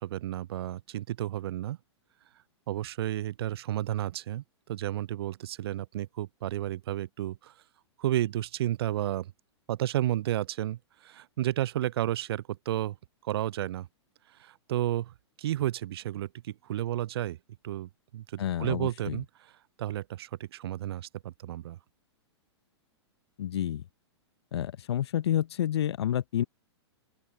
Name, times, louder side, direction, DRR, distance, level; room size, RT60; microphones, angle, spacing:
voice 1, 0.0-1.8 2.7-4.4 4.7-7.5 8.0-9.3 9.7-12.9 13.2-13.9 14.4-15.1 15.4-17.4 17.6-19.3 19.8-21.8, right 13 dB, 60° right, 0.4 m, -32 dB
voice 2, 18.4-19.2 23.4-23.8 24.5-26.4, left 11 dB, 65° left, 1.0 m, -29 dB
open air
figure-of-eight pair, 110°, 15 cm